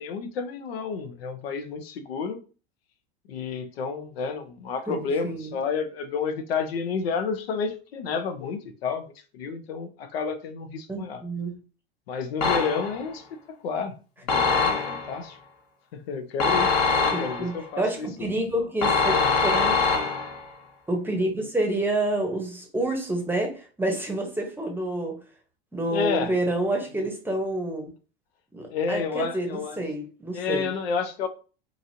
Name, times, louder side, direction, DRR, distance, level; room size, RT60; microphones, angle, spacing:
voice 1, 0.0-2.4 3.3-9.0 9.3-11.2 12.1-13.9 14.2-15.4 15.9-18.1 19.1-19.4 25.9-26.3 28.7-29.8 30.3-31.3, left 5 dB, 85° left, 0.6 m, -30 dB
voice 2, 4.9-5.5 10.9-11.5 17.1-19.8 20.9-25.2 25.7-27.9 28.5-30.7, right 1 dB, 5° right, 0.8 m, -28 dB
sound 1, 12.4-13.1 14.3-15.2 16.4-17.6 18.8-20.5, left 4 dB, 50° left, 1.0 m, -23 dB
2.9 x 2.6 x 2.7 m
hypercardioid pair, 105°, 30 cm